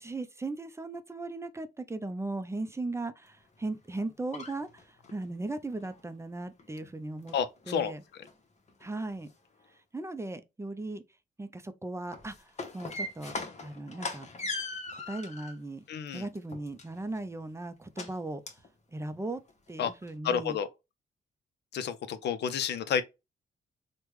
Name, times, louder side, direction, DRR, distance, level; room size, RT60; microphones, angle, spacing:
voice 1, 0.0-7.3 7.7-8.0 8.8-9.3 9.9-11.0 11.4-14.3 15.1-15.8 16.1-18.4 18.9-19.4 19.7-20.6, right 2 dB, 15° right, 0.4 m, -37 dB
sound 1, 4.0-5.3 5.8-6.0 6.4-6.9 7.2-7.8 8.2-8.4 8.7-9.3 9.6-9.7 12.0-15.6 16.1-17.2 18.0-18.1 18.5-18.7 19.0-19.1 19.5-19.6 20.0-20.1, left 3 dB, 40° left, 0.9 m, -40 dB
voice 2, 7.3-7.9 15.9-16.3 19.8-19.9 20.2-20.7 21.7-23.0, left 7 dB, 75° left, 0.5 m, -30 dB
3.4 x 2.1 x 3.0 m
cardioid pair, 75°, 18 cm